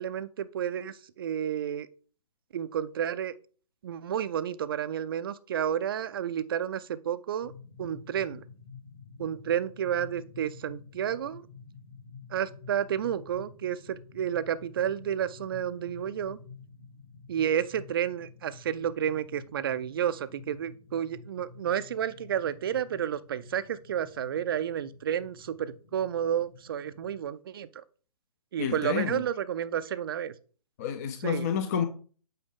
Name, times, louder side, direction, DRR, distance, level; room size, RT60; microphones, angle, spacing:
voice 1, 0.0-1.9 2.5-3.3 3.8-7.5 7.8-8.4 9.2-11.5 12.3-16.4 17.3-27.8 28.5-30.3 31.2-31.5, right 9 dB, 35° right, 0.4 m, -31 dB
sound 1, 7.4-27.2, left 5 dB, 40° left, 1.3 m, -50 dB
voice 2, 28.6-29.2 30.8-31.9, left 8 dB, 25° left, 0.5 m, -29 dB
8.0 x 4.5 x 3.6 m
figure-of-eight pair, 135°, 20 cm